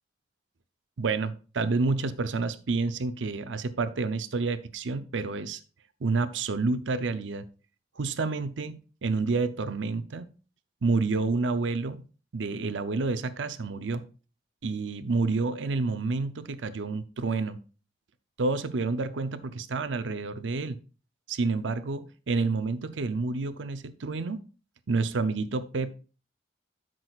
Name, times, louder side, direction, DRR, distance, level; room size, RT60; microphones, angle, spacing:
voice 1, 1.0-5.6 6.0-7.4 8.0-10.3 10.8-12.0 12.3-14.0 14.6-17.6 18.4-20.8 21.3-24.4 24.9-25.9, right 3 dB, 90° right, 0.6 m, -29 dB
12.0 x 6.1 x 2.4 m
head